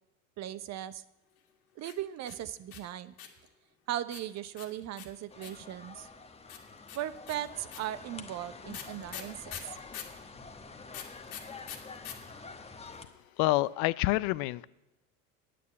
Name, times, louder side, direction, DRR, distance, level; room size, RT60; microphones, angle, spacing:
voice 1, 0.4-1.0 1.8-3.1 3.9-6.1 6.9-9.8, right 12 dB, 40° right, 15 dB, 0.7 m, -38 dB
sound 1, 1.8-3.5 4.1-5.7 6.5-10.2 10.9-12.1 12.4-12.5 12.7-13.2, left 9 dB, 90° left, 2.0 m, -44 dB
sound 2, 5.3-13.0, left 4 dB, 15° left, 1.1 m, -47 dB
voice 2, 13.4-14.7, left 19 dB, 60° left, 18 dB, 0.5 m, -27 dB
9.3 x 8.6 x 8.3 m, 0.94 s
hypercardioid pair, 90°, 41 cm